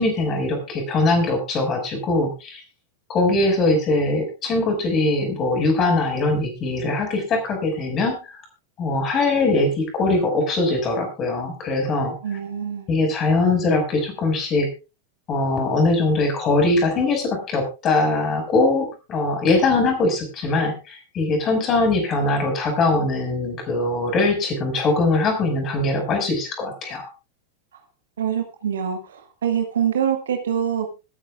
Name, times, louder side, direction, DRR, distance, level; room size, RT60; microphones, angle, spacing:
voice 1, 0.0-2.6 3.1-8.1 8.8-12.1 12.9-14.7 15.3-27.1, left 2 dB, 30° left, 5 dB, 5.5 m, -21 dB
voice 2, 12.2-12.9 28.2-30.9, right 8 dB, 65° right, 5 dB, 2.0 m, -25 dB
25.5 x 9.9 x 2.4 m, 0.29 s
figure-of-eight pair, 90°, 0 cm